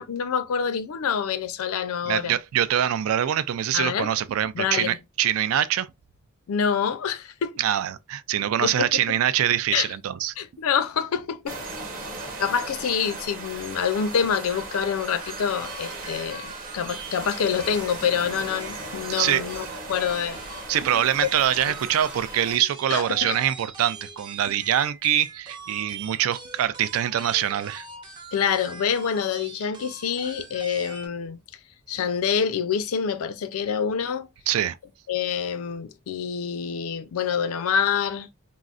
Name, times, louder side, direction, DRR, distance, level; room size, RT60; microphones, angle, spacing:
voice 1, 0.0-2.4 3.7-4.1 4.5-5.0 6.5-7.6 8.6-9.0 9.7-9.9 10.4-11.6 12.4-20.4 21.2-21.3 21.7-21.8 22.9-23.4 28.3-31.4 31.9-34.3 35.1-38.3, left 7 dB, 80° left, 0.4 m, -26 dB
voice 2, 2.1-5.9 7.6-10.3 19.1-19.4 19.7-19.8 20.7-27.9 34.5-34.8, right 10 dB, 70° right, 0.3 m, -24 dB
sound 1, 11.4-22.6, right 2 dB, 40° right, 0.9 m, -37 dB
sound 2, 15.2-31.1, right 4 dB, 20° right, 0.6 m, -43 dB
3.7 x 2.0 x 2.4 m
head